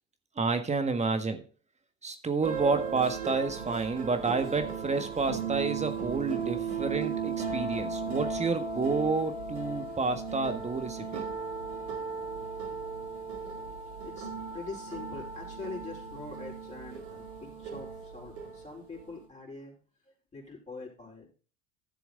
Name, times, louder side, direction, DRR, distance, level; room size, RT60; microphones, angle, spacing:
voice 1, 0.3-1.4 2.0-11.2, right 4 dB, 20° right, 1.5 m, -30 dB
sound 1, 2.4-19.2, right 5 dB, 70° right, 4.5 m, -36 dB
voice 2, 14.5-19.7 20.3-21.3, left 3 dB, 20° left, 4.8 m, -43 dB
13.0 x 6.9 x 3.8 m
hypercardioid pair, 75°, 33 cm